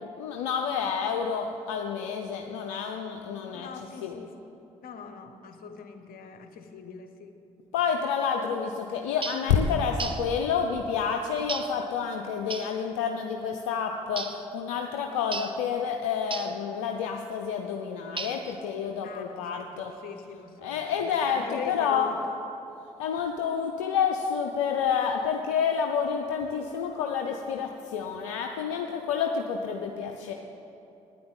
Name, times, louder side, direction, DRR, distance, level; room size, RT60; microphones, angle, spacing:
voice 1, 0.2-3.7 4.0-4.2 7.7-19.9 20.6-22.1 23.0-30.3, left 7 dB, 85° left, 3 dB, 0.6 m, -29 dB
voice 2, 3.5-4.4 4.8-7.4 19.0-22.4, left 6 dB, 65° left, 7 dB, 1.1 m, -42 dB
sound 1, 9.2-9.5 10.0-10.3 11.5-11.8 12.5-12.8 14.2-14.5 15.3-15.6 16.3-16.6 18.2-18.6, right 4 dB, 30° right, 1.0 m, -35 dB
9.8 x 8.5 x 8.9 m, 3.0 s
hypercardioid pair, 45°, 16 cm